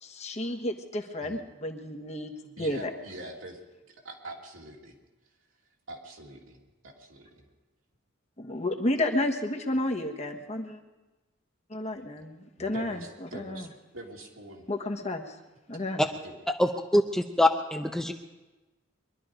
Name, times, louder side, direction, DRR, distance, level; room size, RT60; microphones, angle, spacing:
voice 1, 0.0-2.3 2.6-2.9 8.4-10.8 11.7-13.7 14.7-15.4 15.7-16.0, left 1 dB, 35° left, 3 dB, 1.3 m, -31 dB
voice 2, 2.6-3.6 3.9-4.9 5.9-6.6 6.8-7.5 12.6-13.7 13.9-14.6 16.2-16.3, right 1 dB, 75° right, -1 dB, 2.9 m, -44 dB
voice 3, 16.6-18.1, left 1 dB, 5° left, 4 dB, 0.6 m, -24 dB
23.0 x 12.0 x 5.1 m, 1.1 s
head